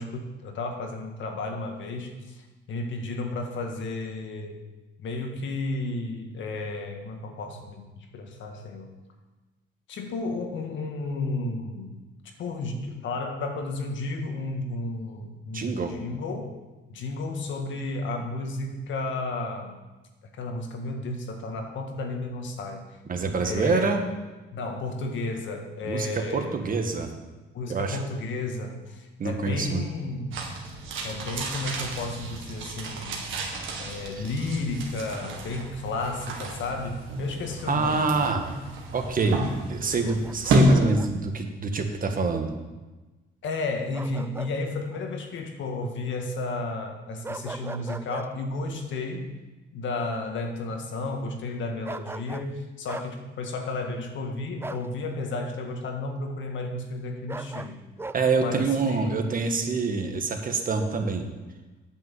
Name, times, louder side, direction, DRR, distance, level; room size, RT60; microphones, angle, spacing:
voice 1, 0.0-4.6 5.0-8.9 9.9-12.0 12.2-16.5 16.9-19.8 20.3-22.8 23.4-24.0 24.5-26.6 27.5-30.5 31.0-33.2 33.8-38.1 43.4-49.3 49.7-57.8 58.4-59.2, left 2 dB, 75° left, 4 dB, 1.7 m, -33 dB
voice 2, 15.5-15.9 23.1-24.0 25.8-27.1 27.7-28.0 29.2-29.8 37.7-38.4 38.9-39.4 39.7-42.5 58.1-61.3, right 4 dB, 45° right, 5 dB, 1.5 m, -26 dB
sound 1, 30.3-40.7, right 1 dB, 85° right, 2.0 m, -30 dB
Bark, 40.0-41.1 43.9-44.6 44.9-45.1 47.2-48.3 51.8-52.5 52.9-53.1 54.6-54.9 57.3-58.2, right 3 dB, 10° right, 0.4 m, -38 dB
8.7 x 6.3 x 7.7 m, 1.2 s
cardioid pair, 90°, 20 cm